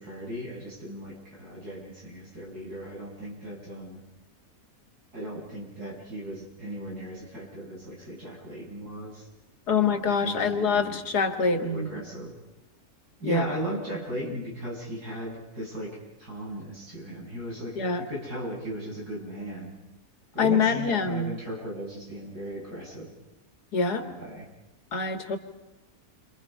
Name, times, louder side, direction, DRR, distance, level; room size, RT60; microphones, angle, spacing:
voice 1, 0.0-4.0 5.1-9.3 9.7-11.0 11.4-12.3 13.2-19.7 20.3-23.1 24.0-24.5, right 1 dB, 75° right, -3 dB, 7.7 m, -37 dB
voice 2, 9.7-11.9 13.2-13.5 17.8-18.0 20.4-21.3 23.7-24.0 24.9-25.4, left 4 dB, 80° left, 7 dB, 2.4 m, -25 dB
29.0 x 26.5 x 5.6 m, 1.0 s
omnidirectional pair, 1.7 m